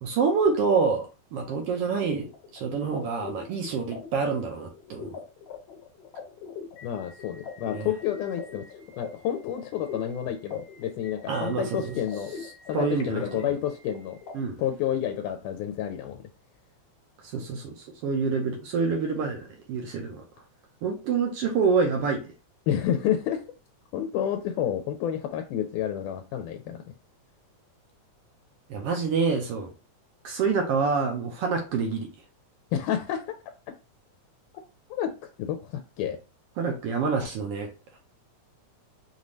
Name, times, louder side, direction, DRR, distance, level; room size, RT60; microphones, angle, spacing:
voice 1, 0.0-5.2 7.7-7.9 11.3-12.0 12.7-13.5 14.3-14.6 17.3-20.2 20.8-22.3 28.7-29.7 30.2-32.1 36.6-37.7, right 5 dB, 75° right, 3 dB, 1.4 m, -27 dB
sound 1, 1.5-14.3, left 6 dB, 65° left, 1.9 m, -43 dB
voice 2, 6.8-8.7 9.0-12.3 12.7-14.2 14.6-16.2 22.7-23.4 23.9-26.8 32.7-33.4 34.9-35.1 35.4-36.2, left 10 dB, 85° left, 4 dB, 2.1 m, -29 dB
5.4 x 2.6 x 3.1 m, 0.32 s
omnidirectional pair, 3.5 m